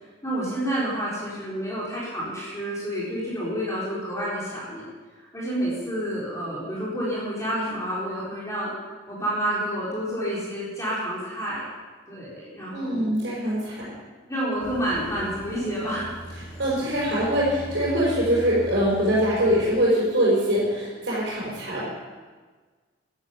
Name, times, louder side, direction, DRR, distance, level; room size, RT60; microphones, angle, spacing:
voice 1, 0.2-4.9 5.2-8.7 9.1-11.6 12.1-13.1 14.3-16.1, right 1 dB, 15° left, -8 dB, 4.0 m, -29 dB
voice 2, 12.7-13.9 16.6-21.8, equal, 65° right, -8 dB, 5.2 m, -23 dB
sound 1, 14.6-19.6, equal, 10° right, 4.3 m, -40 dB
12.5 x 11.5 x 7.4 m, 1.4 s
head